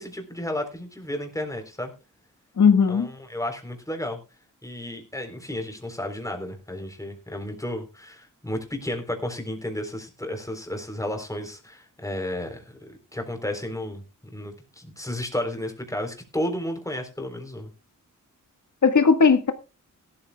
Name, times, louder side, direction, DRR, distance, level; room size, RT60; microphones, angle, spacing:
voice 1, 0.0-1.9 2.9-4.2 4.6-17.7, left 1 dB, 10° left, 3.9 m, -32 dB
voice 2, 2.6-3.1 18.8-19.5, left 5 dB, 70° left, 1.7 m, -17 dB
17.0 x 13.0 x 2.3 m
wide cardioid pair, 90°, 31 cm